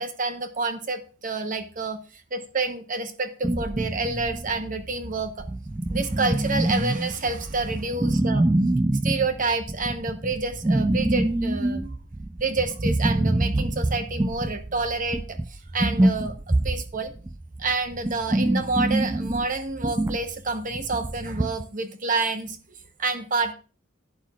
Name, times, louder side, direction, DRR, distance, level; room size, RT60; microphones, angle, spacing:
voice 1, 0.0-5.4 5.9-8.5 9.0-11.9 12.4-17.1 17.6-23.5, right 3 dB, 40° right, 7 dB, 0.9 m, -28 dB
sound 1, 3.4-21.6, right 1 dB, 15° right, 0.3 m, -26 dB
11.5 x 9.1 x 2.4 m, 0.36 s
head